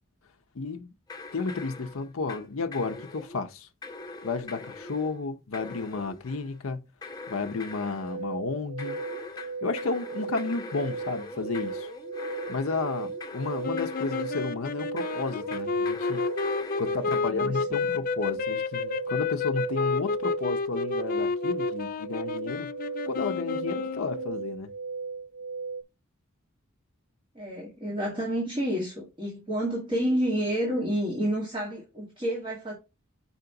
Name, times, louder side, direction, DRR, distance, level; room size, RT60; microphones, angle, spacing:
voice 1, 0.5-0.9 1.3-3.7 4.2-6.9 7.3-9.0 9.6-11.9 12.5-16.2 16.8-22.7 23.1-24.7, left 4 dB, 80° left, 0.7 m, -32 dB
sound 1, 1.1-2.5 2.7-3.4 3.8-5.2 5.5-6.6 7.0-8.2 8.8-14.5 15.0-17.2, left 3 dB, 20° left, 1.0 m, -42 dB
sound 2, 7.9-25.8, right 4 dB, 70° right, 0.4 m, -37 dB
sound 3, 13.6-24.4, left 5 dB, 45° left, 0.4 m, -30 dB
voice 2, 17.0-17.9 27.3-32.7, equal, 25° right, 1.8 m, -30 dB
5.8 x 4.3 x 3.8 m
head